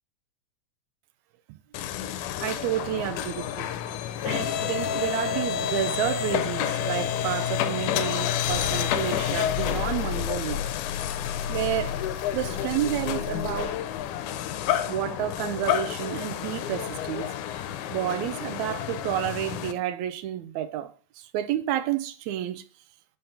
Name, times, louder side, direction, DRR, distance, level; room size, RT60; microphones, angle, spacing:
sound 1, 1.7-19.7, left 9 dB, 85° left, 2.0 m, -29 dB
voice 1, 2.4-3.7 4.2-10.6 11.5-12.0 12.3-13.8 14.9-17.3 17.9-22.6, right 12 dB, 80° right, 1.8 m, -30 dB
5.5 x 3.7 x 5.5 m
omnidirectional pair, 3.5 m